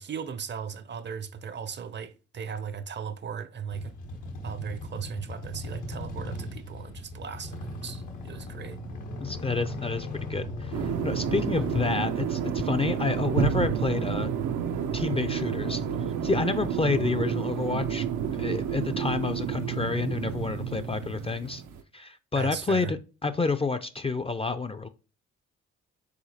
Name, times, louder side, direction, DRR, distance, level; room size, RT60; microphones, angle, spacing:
voice 1, 0.0-3.9 4.4-8.8 22.3-22.9, right 7 dB, 40° right, 0.5 m, -37 dB
sound 1, 3.7-11.9, left 1 dB, 85° left, 1.0 m, -37 dB
voice 2, 9.2-14.3 14.9-15.8 16.2-18.0 18.4-21.6 21.9-24.9, left 4 dB, 20° left, 0.3 m, -29 dB
sound 2, 10.7-21.8, right 8 dB, 85° right, 0.5 m, -30 dB
4.9 x 3.8 x 2.8 m
supercardioid pair, 55°, 30 cm